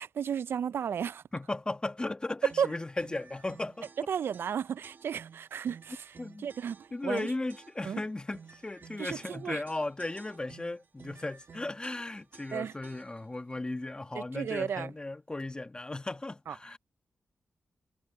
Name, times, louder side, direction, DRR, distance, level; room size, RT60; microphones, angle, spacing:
voice 1, 0.0-1.2 2.6-2.7 4.1-6.1 6.4-7.3 7.8-8.0 9.0-9.6 12.5-12.7 14.1-14.9 16.5-16.6, right 8 dB, 75° right, 0.4 m, -33 dB
voice 2, 1.3-4.1 6.2-6.5 6.9-16.8, left 2 dB, 25° left, 1.6 m, -36 dB
sound 1, 2.5-13.4, right 6 dB, 60° right, 1.4 m, -54 dB
cardioid pair, 70°, 4 cm